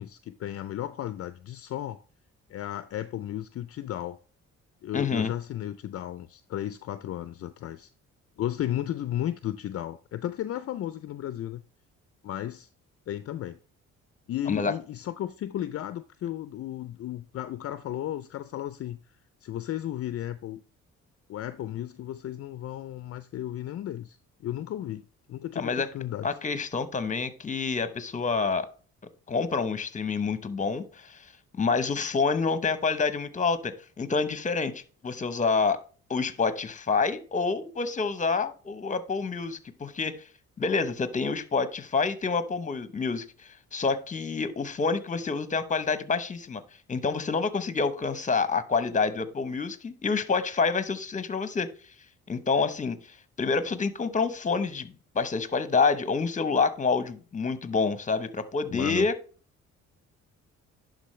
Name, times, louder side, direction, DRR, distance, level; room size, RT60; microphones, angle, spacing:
voice 1, 0.0-2.0 2.5-4.2 4.8-7.9 8.4-11.6 12.2-12.7 13.1-13.6 14.3-19.0 19.4-20.6 21.3-26.3 58.7-59.1, left 12 dB, 50° left, 0.4 m, -34 dB
voice 2, 4.9-5.3 14.5-14.7 25.6-25.9 26.2-28.7 29.3-31.3 31.5-35.8 36.1-40.2 40.6-43.2 43.7-46.6 46.9-51.7 52.3-59.1, left 4 dB, 25° left, 0.8 m, -27 dB
11.0 x 3.9 x 3.1 m
cardioid pair, 90°, 30 cm